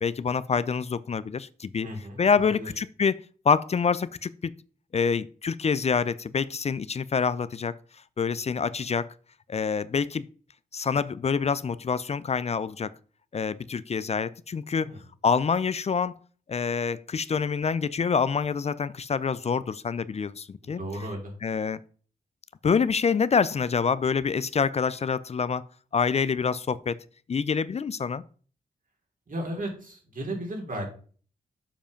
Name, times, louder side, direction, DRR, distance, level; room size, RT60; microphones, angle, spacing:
voice 1, 0.0-1.9 2.2-3.2 3.5-4.5 4.9-7.8 8.2-9.1 9.5-10.3 10.7-12.9 13.3-14.9 15.2-16.2 16.5-20.8 21.4-21.8 22.6-25.6 25.9-27.0 27.3-28.2, left 6 dB, 45° left, 17 dB, 0.4 m, -26 dB
voice 2, 1.8-2.7 14.7-15.0 20.6-21.3 29.3-30.9, right 1 dB, 60° right, 1 dB, 3.3 m, -35 dB
7.1 x 5.0 x 5.1 m, 0.42 s
cardioid pair, 60°, 15 cm